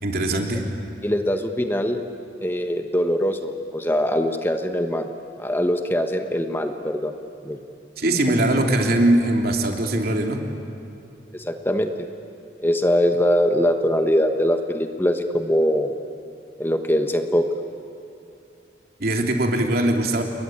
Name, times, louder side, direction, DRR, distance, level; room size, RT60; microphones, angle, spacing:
voice 1, 0.0-0.6 8.0-10.4 19.0-20.2, right 1 dB, 55° right, 2 dB, 3.1 m, -21 dB
voice 2, 1.0-2.0 2.4-5.1 5.4-7.1 7.4-7.6 11.3-12.1 12.6-15.9 16.6-17.5, equal, 10° left, 6 dB, 1.2 m, -22 dB
29.5 x 22.5 x 8.8 m, 2.7 s
head